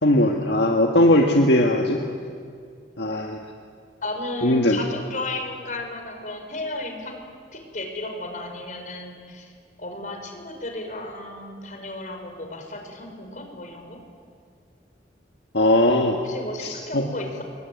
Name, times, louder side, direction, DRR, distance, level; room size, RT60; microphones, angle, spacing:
voice 1, 0.0-2.0 3.0-3.4 4.4-4.8 15.5-16.2 16.6-17.0, left 1 dB, 70° left, 2 dB, 1.8 m, -19 dB
voice 2, 4.0-7.2 7.5-9.5 9.8-14.0 16.1-17.4, left 2 dB, 45° left, 4 dB, 5.2 m, -34 dB
26.5 x 23.0 x 9.6 m, 2.2 s
head